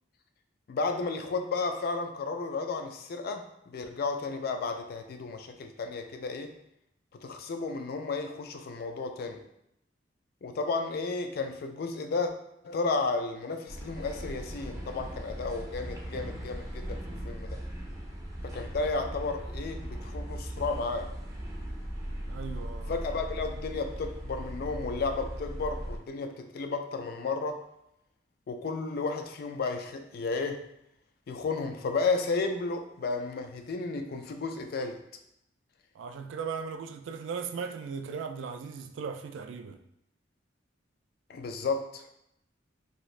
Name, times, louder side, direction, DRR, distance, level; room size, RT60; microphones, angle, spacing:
voice 1, 0.7-6.5 7.2-9.4 10.4-12.3 12.6-17.6 18.4-21.1 22.9-27.6 28.5-30.6 31.3-35.0 41.3-42.1, left 3 dB, 55° left, 0.3 m, -33 dB
sound 1, 13.7-26.0, right 1 dB, 20° right, 0.5 m, -38 dB
voice 2, 22.3-22.9 36.0-39.8, right 5 dB, 90° right, 0.3 m, -37 dB
2.7 x 2.5 x 3.1 m
head